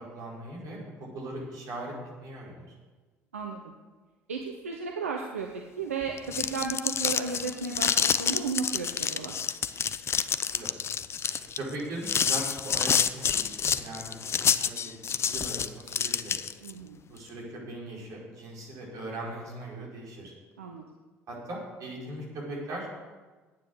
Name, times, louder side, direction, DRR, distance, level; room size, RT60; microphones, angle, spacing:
voice 1, 0.0-1.9 2.2-2.7 10.5-10.7 11.5-16.4 17.0-20.3 21.3-22.9, right 1 dB, 55° right, -4 dB, 4.8 m, -39 dB
voice 2, 4.3-5.5 5.8-9.4 16.6-17.0 20.6-20.8, right 5 dB, 85° right, 2 dB, 0.8 m, -34 dB
sound 1, 6.1-16.7, left 7 dB, 35° left, 0.6 m, -28 dB
10.5 x 9.0 x 6.8 m, 1.3 s
figure-of-eight pair, 55°, 7 cm